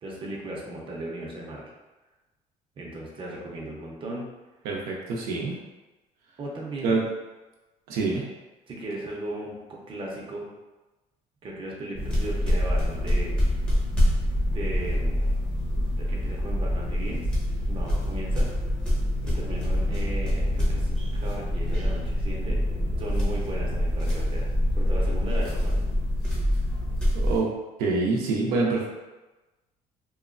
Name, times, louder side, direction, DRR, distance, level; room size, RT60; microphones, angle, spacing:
voice 1, 0.0-1.7 2.8-4.3 6.4-7.0 8.7-10.5 11.4-13.3 14.5-15.4 15.7-17.3 17.7-18.5 19.2-22.6 23.0-25.8, right 1 dB, 35° right, -3 dB, 0.6 m, -37 dB
voice 2, 4.6-5.6 6.8-7.0 7.9-8.2 27.1-27.5 27.8-29.0, right 3 dB, 90° right, -2 dB, 0.5 m, -26 dB
sound 1, 12.0-27.4, equal, 5° left, 0.7 m, -25 dB
2.9 x 2.0 x 2.4 m, 1.1 s
cardioid pair, 115°, 15 cm